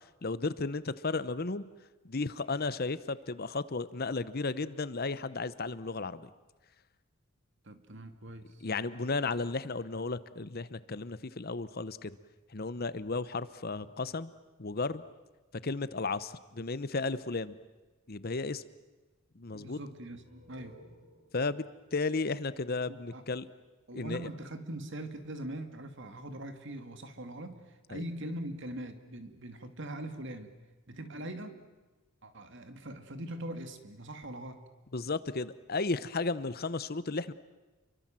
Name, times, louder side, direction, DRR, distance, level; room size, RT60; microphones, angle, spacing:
voice 1, 0.2-1.6 2.0-6.3 8.6-12.1 12.5-14.3 14.6-15.0 15.6-17.6 18.1-18.6 19.4-19.8 21.3-21.7 21.9-23.5 23.9-24.3 27.9-28.0 34.9-37.3, left 3 dB, 45° left, 15 dB, 0.9 m, -34 dB
voice 2, 7.6-8.5 19.5-20.8 22.9-23.2 23.9-27.6 27.9-30.5 30.9-31.6 32.2-34.6, right 1 dB, 60° right, 8 dB, 2.4 m, -42 dB
sound 1, 19.9-23.4, equal, 80° right, 7.1 m, -61 dB
29.5 x 23.5 x 7.6 m, 1.2 s
head